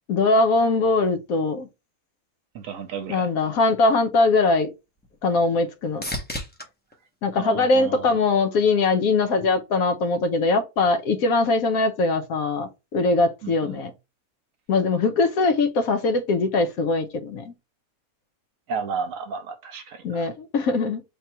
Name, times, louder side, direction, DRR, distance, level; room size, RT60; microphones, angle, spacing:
voice 1, 0.1-1.7 3.1-4.7 5.2-6.0 7.2-13.9 14.7-17.5 20.0-21.0, left 3 dB, 75° left, 1.2 m, -21 dB
voice 2, 2.5-3.3 7.4-8.2 13.4-13.8 18.7-20.2, right 5 dB, 70° right, 1.1 m, -33 dB
sound 1, 4.3-8.5 9.0-9.6 17.4-17.5, left 1 dB, 10° left, 0.6 m, -38 dB
3.8 x 2.8 x 4.4 m
omnidirectional pair, 1.5 m